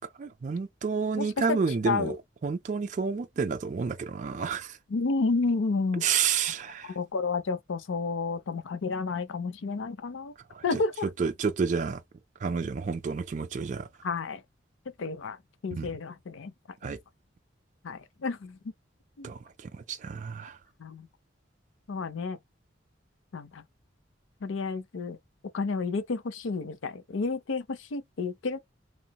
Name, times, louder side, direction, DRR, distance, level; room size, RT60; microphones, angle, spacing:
voice 1, 0.2-2.2 2.4-4.8 6.0-6.9 10.5-10.8 11.2-12.0 12.4-13.9 15.8-15.9 16.8-17.0 19.2-20.6, right 5 dB, 40° right, 0.3 m, -30 dB
voice 2, 1.2-1.6 1.9-2.2 4.9-6.2 6.8-10.3 10.6-11.1 14.0-14.4 15.0-15.4 15.6-16.5 17.8-18.6 19.2-19.3 20.8-21.1 21.9-22.4 23.3-23.6 24.4-25.2 25.5-28.6, left 4 dB, 85° left, 0.5 m, -31 dB
3.1 x 2.9 x 2.2 m
head